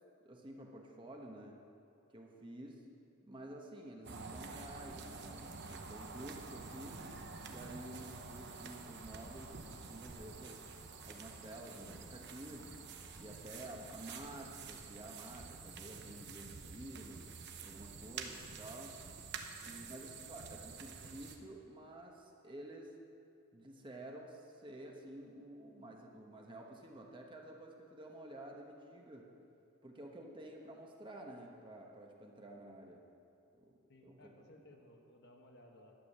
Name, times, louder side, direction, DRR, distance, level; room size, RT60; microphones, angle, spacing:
voice 1, 0.2-1.6 2.1-2.8 3.2-7.0 7.5-10.6 11.1-12.7 13.2-17.2 17.6-19.0 19.6-22.9 23.5-29.3 29.8-33.0 33.5-34.3, right 1 dB, 25° right, 0 dB, 1.1 m, -51 dB
sound 1, 4.0-21.4, right 4 dB, 55° right, 0.9 m, -49 dB
voice 2, 33.9-36.0, left 1 dB, 50° left, 2 dB, 1.3 m, -60 dB
11.5 x 9.3 x 6.6 m, 2.6 s
head